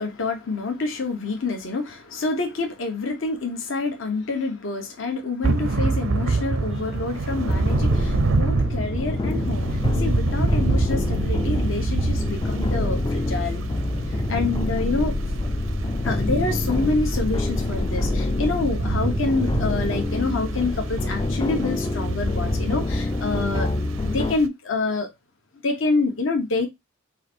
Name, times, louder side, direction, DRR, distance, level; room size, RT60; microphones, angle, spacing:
voice 1, 0.0-13.6 14.1-15.2 16.0-23.7 24.0-25.1 25.6-26.7, left 3 dB, 70° left, 1.0 m, -27 dB
Thunder / Rain, 5.4-24.5, right 3 dB, 75° right, 0.5 m, -28 dB
sound 1, 7.3-24.3, left 2 dB, 20° left, 0.3 m, -26 dB
4.7 x 2.6 x 4.3 m
head